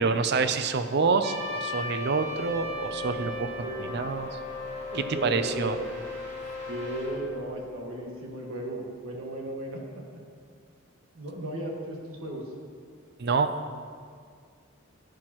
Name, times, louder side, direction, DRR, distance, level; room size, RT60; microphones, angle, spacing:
voice 1, 0.0-4.4 4.9-5.8 13.2-13.5, right 4 dB, 55° right, 10 dB, 0.5 m, -27 dB
Riser neutral, 1.2-9.0, left 3 dB, 15° right, 2.1 m, -40 dB
Trumpet, 1.2-5.7, equal, 35° right, 1.3 m, -37 dB
voice 2, 3.6-4.0 4.9-5.8 6.7-10.2 11.1-12.4, right 1 dB, 85° right, -1 dB, 1.6 m, -36 dB
10.5 x 9.6 x 3.0 m, 2.1 s
head